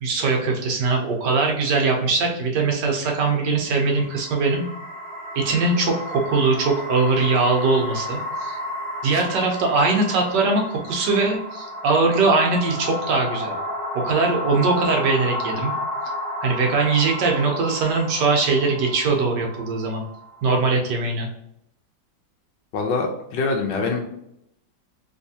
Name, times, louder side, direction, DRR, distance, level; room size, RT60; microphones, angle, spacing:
voice 1, 0.0-4.6 5.4-8.6 9.0-13.6 13.9-15.7 16.4-20.0 20.4-21.3, right 3 dB, 70° right, 1 dB, 1.3 m, -21 dB
sound 1, 3.6-20.8, left 1 dB, 50° right, 0.7 m, -32 dB
voice 2, 22.7-24.0, left 3 dB, 75° left, 1 dB, 1.3 m, -24 dB
3.3 x 3.1 x 2.7 m, 0.78 s
omnidirectional pair, 2.0 m